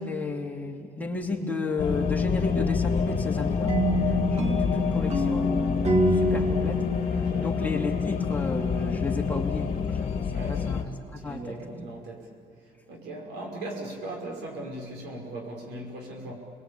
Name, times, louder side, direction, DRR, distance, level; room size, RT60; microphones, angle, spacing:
voice 1, 0.0-3.8 4.0-6.8 7.1-11.6, left 3 dB, 10° left, 0 dB, 2.9 m, -33 dB
sound 1, 1.8-10.8, left 6 dB, 45° left, 2.3 m, -27 dB
sound 2, 3.7-8.6, right 1 dB, 40° right, 2.3 m, -27 dB
voice 2, 7.1-7.6 10.3-10.7 11.2-12.3 12.6-16.3, right 1 dB, 85° right, 1 dB, 5.7 m, -38 dB
28.0 x 22.0 x 8.7 m, 2.3 s
cardioid pair, 110°, 17 cm